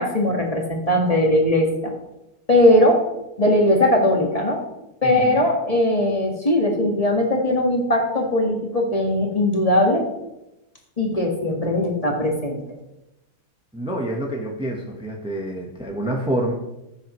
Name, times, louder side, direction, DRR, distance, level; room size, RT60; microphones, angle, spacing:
voice 1, 0.0-1.9 2.5-3.0 3.4-4.6 5.0-10.0 11.0-12.6, left 1 dB, 20° left, 0 dB, 1.4 m, -19 dB
voice 2, 5.0-5.5 13.7-16.5, right 1 dB, 5° right, 0 dB, 0.5 m, -27 dB
15.0 x 7.7 x 3.1 m, 0.91 s
omnidirectional pair, 2.3 m